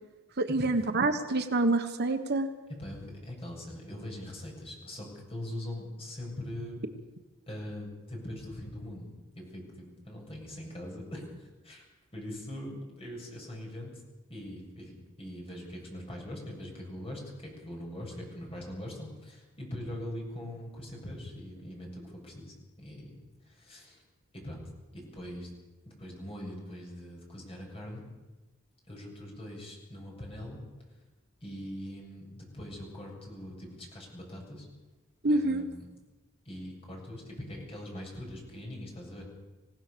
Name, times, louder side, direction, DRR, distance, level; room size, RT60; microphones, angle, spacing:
voice 1, 0.4-2.5 35.2-35.6, right 2 dB, 50° right, 7 dB, 1.3 m, -27 dB
voice 2, 2.8-6.8 7.5-11.9 12.1-14.0 14.3-23.2 23.4-24.0 24.3-24.6 24.9-25.5 25.9-28.0 28.9-30.6 31.4-34.7 35.2-35.9 36.4-39.2, left 1 dB, 30° left, -1 dB, 7.5 m, -42 dB
26.0 x 17.5 x 7.0 m, 1.1 s
head